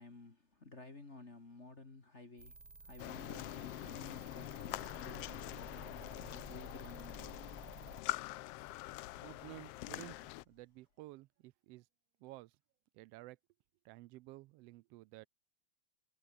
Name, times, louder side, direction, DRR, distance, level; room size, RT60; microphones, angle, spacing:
voice 1, 0.0-7.5, left 3 dB, 25° left, 2.3 m, -54 dB
sound 1, 2.4-8.0, right 3 dB, 20° right, 1.0 m, -54 dB
sound 2, 3.0-10.4, left 18 dB, 85° left, 1.3 m, -44 dB
voice 2, 9.2-11.9 12.2-12.6 12.9-13.4 13.8-15.3, right 19 dB, 85° right, 1.4 m, -53 dB
Idling, 11.0-11.1, left 5 dB, 50° left, 3.9 m, -69 dB
omnidirectional pair, 3.4 m